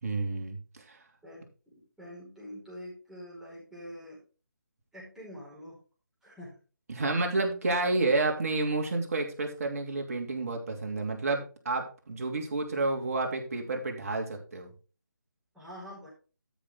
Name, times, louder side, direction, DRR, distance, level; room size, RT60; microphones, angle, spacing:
voice 1, 0.0-1.0 6.9-14.7, right 3 dB, 45° right, 3 dB, 2.8 m, -30 dB
voice 2, 1.2-4.2 4.9-5.8 6.2-6.6 15.5-16.1, equal, 5° right, -7 dB, 4.9 m, -46 dB
13.0 x 6.3 x 3.7 m, 0.35 s
figure-of-eight pair, 150°, 11 cm